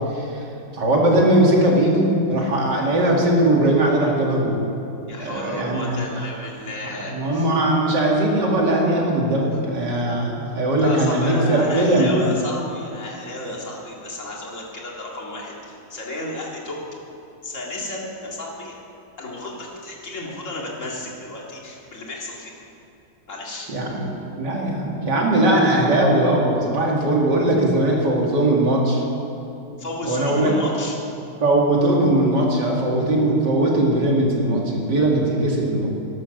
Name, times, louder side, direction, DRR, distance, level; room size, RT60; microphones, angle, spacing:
voice 1, 0.1-0.4 0.7-4.6 5.2-6.3 7.0-12.2 23.7-24.0 24.4-29.0 30.0-30.5 31.4-35.9, right 1 dB, 55° right, -2 dB, 2.8 m, -19 dB
voice 2, 5.1-7.5 10.7-16.8 17.4-18.7 19.2-22.5 23.3-23.7 29.8-31.0, left 2 dB, 35° left, -2 dB, 2.5 m, -32 dB
12.5 x 11.5 x 6.6 m, 2.8 s
omnidirectional pair, 2.2 m